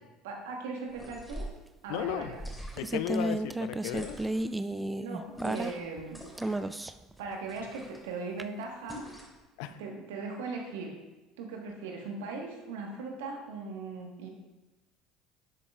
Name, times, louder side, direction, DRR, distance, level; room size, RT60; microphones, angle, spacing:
voice 1, 0.2-1.5 1.8-2.4 5.0-6.2 7.2-9.0 9.8-10.9 11.4-14.3, right 4 dB, 75° right, 1 dB, 1.4 m, -39 dB
sound 1, 0.9-1.6 2.3-3.0 3.9-4.5 5.3-5.8 6.1-6.7 7.5-8.0 8.9-9.4, equal, 10° left, 2.9 m, -43 dB
voice 2, 1.9-2.4 2.8-4.2 9.6-9.8, left 12 dB, 70° left, 12 dB, 0.5 m, -35 dB
sound 2, 2.1-6.0 6.4-7.1 8.4-8.5, right 1 dB, 15° right, 0.4 m, -33 dB
12.0 x 7.9 x 2.4 m, 1.1 s
hypercardioid pair, 65°, 0 cm